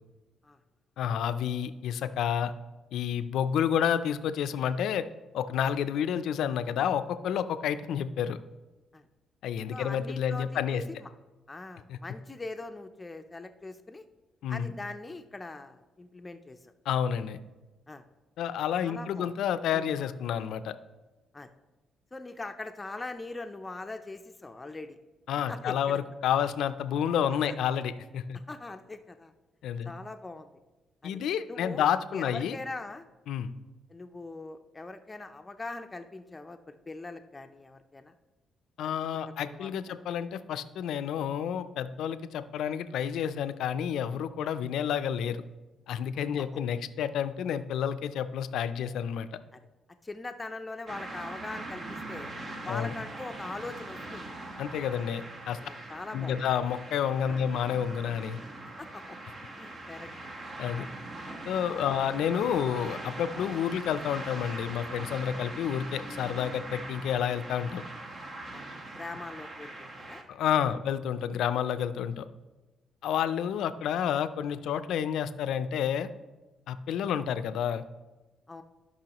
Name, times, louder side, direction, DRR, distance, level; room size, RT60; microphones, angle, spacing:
voice 1, 1.0-2.5 2.9-5.0 5.3-8.4 9.4-10.8 11.9-12.0 14.4-14.7 16.9-17.4 18.4-20.7 25.3-28.4 29.6-29.9 31.0-32.6 33.3-33.5 38.8-45.4 45.9-49.3 52.7-52.9 54.6-55.6 56.1-58.4 60.6-60.9 61.5-67.8 70.3-72.3 73.0-76.1 76.7-77.8, left 9 dB, 80° left, 12 dB, 0.4 m, -30 dB
voice 2, 9.7-11.1 11.5-14.0 14.5-16.7 17.9-18.0 18.7-19.3 19.7-19.9 21.3-21.5 22.1-25.0 25.5-26.0 27.5-27.6 28.3-29.3 29.8-30.5 31.0-31.2 31.5-33.1 33.9-38.1 38.8-38.9 39.2-40.0 46.4-46.5 49.5-49.6 50.0-52.3 52.6-54.2 55.6-56.4 57.3-57.4 58.8-59.2 59.6-60.1 60.7-60.9 61.7-61.9 68.5-68.7 68.9-70.2 70.6-70.7 78.5-78.6, left 3 dB, 20° left, 7 dB, 0.5 m, -42 dB
sound 1, 50.9-70.2, right 2 dB, 50° right, 1.3 m, -42 dB
15.0 x 5.5 x 3.0 m, 1.2 s
cardioid pair, 90°, 0 cm